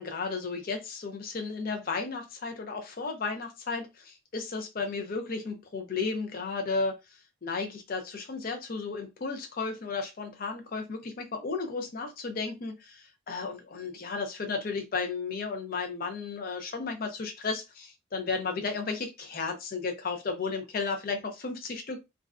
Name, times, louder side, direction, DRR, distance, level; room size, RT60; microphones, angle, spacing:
voice 1, 0.0-6.9 7.4-22.0, left 4 dB, 45° left, 4 dB, 0.5 m, -34 dB
2.5 x 2.1 x 2.3 m, 0.23 s
head